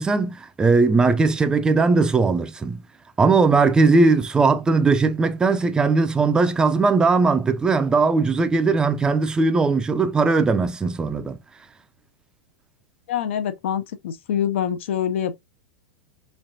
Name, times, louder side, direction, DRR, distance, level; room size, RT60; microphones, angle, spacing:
voice 1, 0.0-2.8 3.2-11.4, right 4 dB, 10° right, 0.4 m, -19 dB
voice 2, 13.1-15.4, left 9 dB, 75° left, 0.6 m, -25 dB
3.5 x 3.2 x 2.7 m
supercardioid pair, 130°, 6 cm